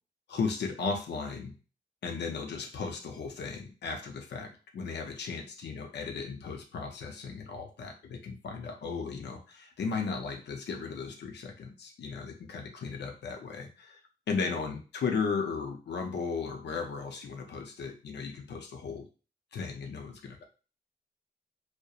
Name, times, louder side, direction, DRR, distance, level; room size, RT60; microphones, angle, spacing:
voice 1, 0.3-1.6 2.0-14.0 14.3-19.1 19.5-20.4, left 5 dB, 90° left, 3 dB, 0.5 m, -36 dB
2.7 x 2.0 x 2.3 m, 0.35 s
wide cardioid pair, 125°, 17 cm